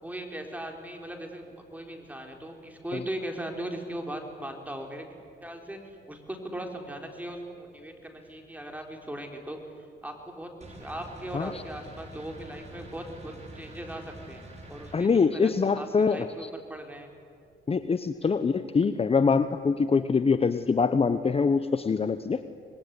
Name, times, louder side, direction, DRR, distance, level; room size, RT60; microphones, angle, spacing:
voice 1, 0.0-5.1 5.4-9.6 10.0-17.1 18.2-18.4, right 1 dB, 10° right, 3 dB, 4.4 m, -39 dB
sound 1, 10.6-15.0, right 1 dB, 35° right, 6.4 m, -46 dB
voice 2, 14.9-16.5 17.7-22.4, left 5 dB, 30° left, 11 dB, 1.0 m, -24 dB
25.5 x 21.0 x 9.8 m, 2.3 s
cardioid pair, 90°, 20 cm